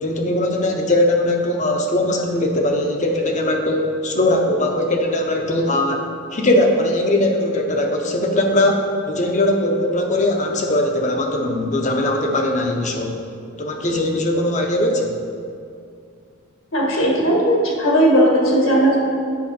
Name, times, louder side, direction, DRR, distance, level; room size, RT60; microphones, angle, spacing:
voice 1, 0.0-13.2 13.6-15.2, left 1 dB, 35° left, 2 dB, 0.8 m, -20 dB
voice 2, 16.7-19.0, equal, 70° left, -2 dB, 1.7 m, -16 dB
8.6 x 6.1 x 4.3 m, 2.4 s
head